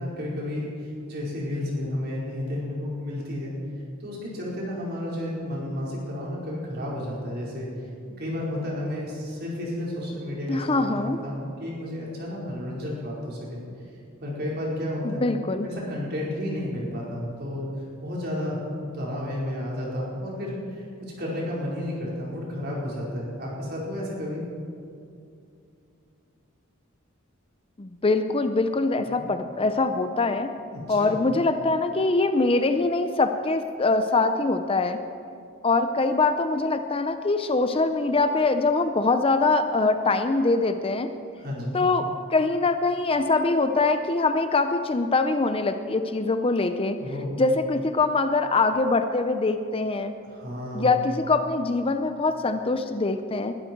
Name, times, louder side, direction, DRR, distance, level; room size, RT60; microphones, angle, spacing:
voice 1, 0.0-3.5 4.0-7.7 8.2-13.6 14.2-15.2 15.6-17.7 18.0-24.4 29.0-29.2 30.7-31.2 41.2-41.8 47.0-47.3 50.2-51.0, left 1 dB, 50° right, -5 dB, 4.7 m, -32 dB
voice 2, 10.5-11.2 15.0-15.7 27.8-30.5 30.9-35.0 35.6-41.1 41.7-47.0 47.4-50.1 50.7-53.5, left 3 dB, 25° left, 8 dB, 0.6 m, -23 dB
21.0 x 12.5 x 4.6 m, 2.5 s
head